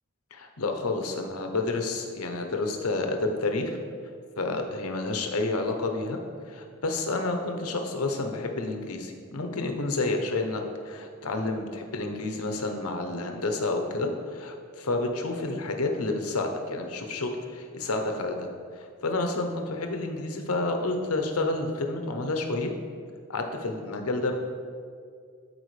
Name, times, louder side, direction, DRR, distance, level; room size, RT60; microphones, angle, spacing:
voice 1, 0.3-3.8 4.4-6.2 6.5-18.5 18.7-22.7 23.3-24.3, left 2 dB, 90° left, 4 dB, 0.8 m, -30 dB
12.0 x 4.5 x 3.3 m, 2.2 s
head